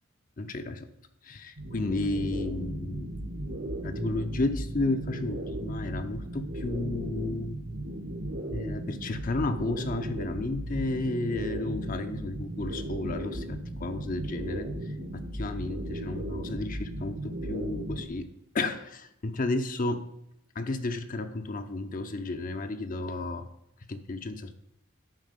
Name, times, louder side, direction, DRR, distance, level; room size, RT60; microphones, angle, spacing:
voice 1, 0.4-0.9 1.2-3.1 3.8-7.6 8.5-18.3 18.5-20.1 20.5-23.5 23.9-24.6, left 2 dB, 40° left, 8 dB, 0.6 m, -32 dB
sound 1, 1.6-18.1, right 1 dB, 65° right, 1.4 m, -36 dB
10.5 x 4.6 x 6.5 m, 0.80 s
head